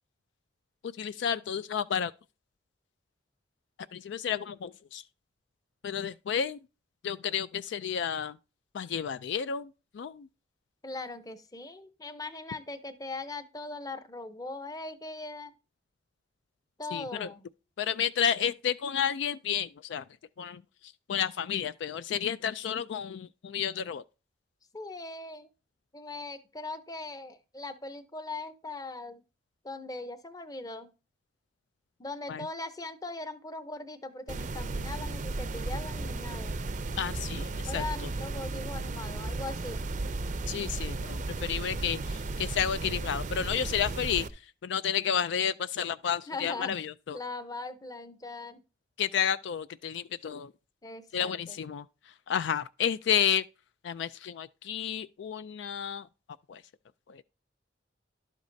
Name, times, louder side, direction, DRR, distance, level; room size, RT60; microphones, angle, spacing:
voice 1, 0.8-2.1 3.9-5.0 5.8-6.6 7.0-8.4 8.7-10.3 16.9-17.3 17.8-20.0 20.4-24.0 32.3-32.5 37.0-37.8 40.5-47.2 49.0-50.5 51.1-53.4 53.8-56.1 56.5-56.6 57.1-57.2, left 8 dB, 65° left, 0.3 m, -31 dB
voice 2, 10.8-15.5 16.8-17.4 24.7-25.5 25.9-29.2 29.6-30.9 32.0-36.6 37.7-39.8 46.3-46.7 47.1-48.6 50.8-51.6, left 2 dB, 20° left, 0.7 m, -40 dB
sound 1, 34.3-44.3, right 2 dB, 40° right, 0.5 m, -35 dB
11.5 x 8.1 x 2.7 m
head